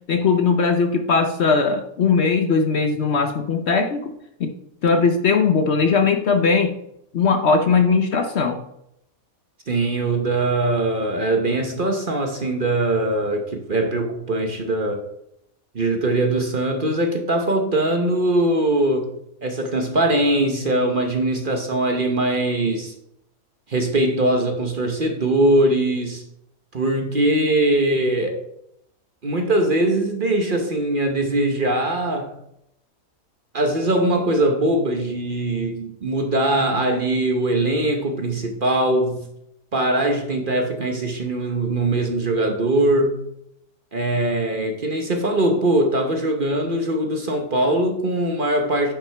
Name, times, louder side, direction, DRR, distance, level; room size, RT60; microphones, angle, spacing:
voice 1, 0.1-4.1 4.4-4.5 4.8-6.7 7.1-8.6, left 5 dB, 55° left, 0.9 m, -19 dB
voice 2, 9.7-15.1 15.7-19.1 19.4-22.9 23.7-26.2 26.7-28.4 29.2-32.3 33.5-39.3 39.7-43.2 43.9-48.9, right 1 dB, 40° right, 1.0 m, -21 dB
9.9 x 6.0 x 3.4 m
omnidirectional pair, 1.5 m